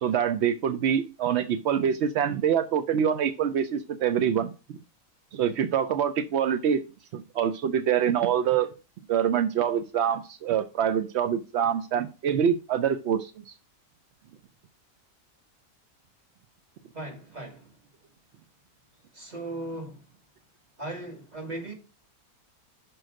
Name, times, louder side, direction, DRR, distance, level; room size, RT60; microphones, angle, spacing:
voice 1, 0.0-4.8 5.3-6.8 7.1-8.7 9.1-13.5, right 8 dB, 70° right, 0.7 m, -25 dB
voice 2, 16.9-17.8 19.1-20.0 20.8-21.7, right 2 dB, 30° right, 2.1 m, -37 dB
6.2 x 4.6 x 6.3 m
omnidirectional pair, 1.6 m